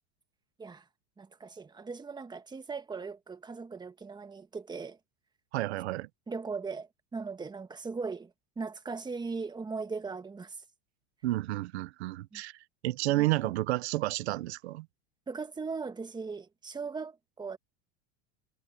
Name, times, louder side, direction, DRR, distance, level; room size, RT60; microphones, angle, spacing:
voice 1, 1.2-5.0 6.3-10.6 12.3-12.4 13.1-13.5 15.3-17.6, right 4 dB, 15° right, 1.6 m, -39 dB
voice 2, 5.5-6.1 11.2-14.9, right 17 dB, 85° right, 1.1 m, -31 dB
supercardioid pair, 120°, 32 cm